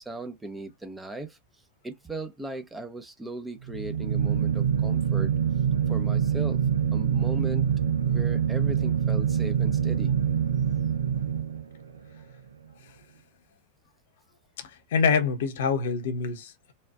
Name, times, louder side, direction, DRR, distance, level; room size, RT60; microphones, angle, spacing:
voice 1, 0.0-1.4 1.8-5.3 5.9-6.6 6.9-7.7 8.0-10.1, right 1 dB, 10° right, 0.8 m, -37 dB
sound 1, 3.6-12.0, right 8 dB, 70° right, 0.5 m, -25 dB
voice 2, 14.6-16.7, left 5 dB, 55° left, 1.0 m, -26 dB
4.2 x 2.5 x 2.4 m
figure-of-eight pair, 90°, 0 cm